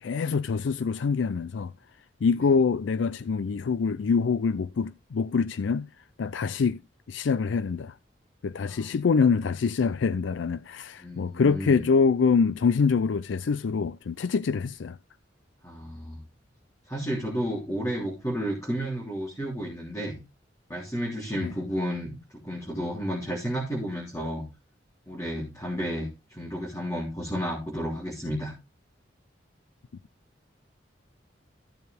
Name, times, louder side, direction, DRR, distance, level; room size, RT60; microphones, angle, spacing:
voice 1, 0.0-1.7 2.2-5.9 6.2-6.8 7.1-7.9 8.4-15.0 21.4-21.5, left 5 dB, 85° left, 0.4 m, -25 dB
voice 2, 8.6-9.1 11.0-11.8 15.6-16.2 16.9-20.2 20.7-22.1 22.4-24.5 25.1-28.5, equal, 15° left, 3.2 m, -32 dB
14.5 x 6.7 x 3.4 m
head